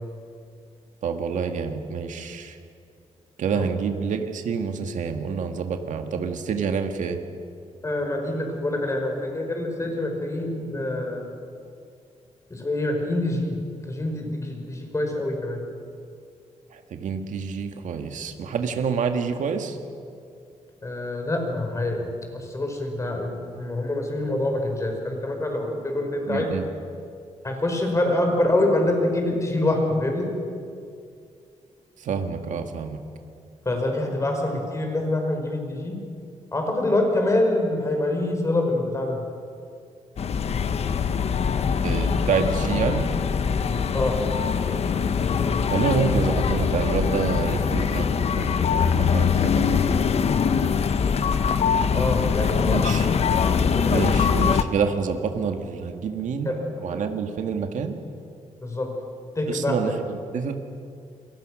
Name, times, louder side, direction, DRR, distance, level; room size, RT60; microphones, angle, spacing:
voice 1, 1.0-2.6 3.4-7.2 16.7-19.8 26.3-26.7 32.0-33.0 41.8-43.1 45.7-48.5 48.8-49.9 52.7-53.1 53.9-56.5 56.8-58.0 59.5-60.6, right 6 dB, 80° right, 5 dB, 2.0 m, -27 dB
voice 2, 7.8-11.3 12.5-13.6 13.9-15.6 20.8-26.5 27.4-30.3 33.7-36.0 36.5-39.2 43.9-44.2 51.9-52.8 53.6-54.0 56.5-56.6 58.6-58.9 59.4-59.7, left 1 dB, 25° left, 2 dB, 5.4 m, -25 dB
sound 1, 40.2-54.6, left 6 dB, 55° left, 1.2 m, -23 dB
29.0 x 23.0 x 6.5 m, 2.4 s
wide cardioid pair, 125°, 13 cm